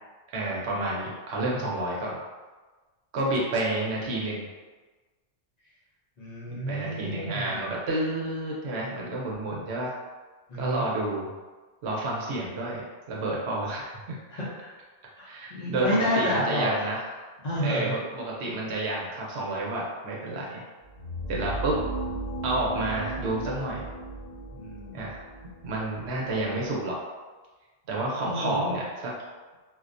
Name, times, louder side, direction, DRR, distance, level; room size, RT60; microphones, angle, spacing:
voice 1, 0.3-2.2 3.1-4.4 6.5-9.9 10.6-11.3 11.8-14.2 15.3-17.0 17.6-20.6 21.3-21.8 22.4-23.8 24.9-25.2 25.6-27.0 27.9-29.1, right 2 dB, 75° right, -3 dB, 0.9 m, -30 dB
voice 2, 6.2-7.6 10.5-10.9 14.3-14.7 15.2-16.9 17.4-18.0 24.6-25.0 28.2-28.7, equal, 50° left, -8 dB, 0.6 m, -29 dB
sound 1, 20.8-26.7, right 2 dB, 75° left, 1.0 m, -36 dB
2.3 x 2.1 x 2.5 m, 1.3 s
omnidirectional pair, 1.1 m